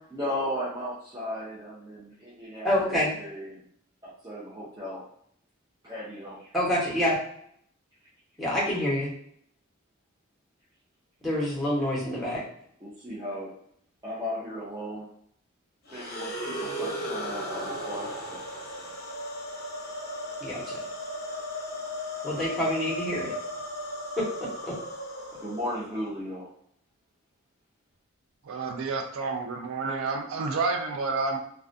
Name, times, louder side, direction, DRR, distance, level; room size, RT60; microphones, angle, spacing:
voice 1, 0.1-2.9 3.2-3.6 4.0-5.0 5.8-6.5 12.1-12.4 12.8-13.5 14.0-15.1 15.9-18.4 18.7-18.9 25.4-26.5, equal, 15° right, -8 dB, 0.4 m, -36 dB
voice 2, 2.6-3.1 6.5-7.2 8.4-9.1 11.2-12.4 20.4-20.6 22.2-23.3 24.2-24.7, left 1 dB, ahead, -7 dB, 0.8 m, -27 dB
sound 1, 15.9-26.1, equal, 45° left, 0.6 m, -36 dB
voice 3, 28.5-31.4, right 4 dB, 80° right, 4 dB, 0.4 m, -29 dB
2.3 x 2.1 x 2.5 m, 0.67 s
head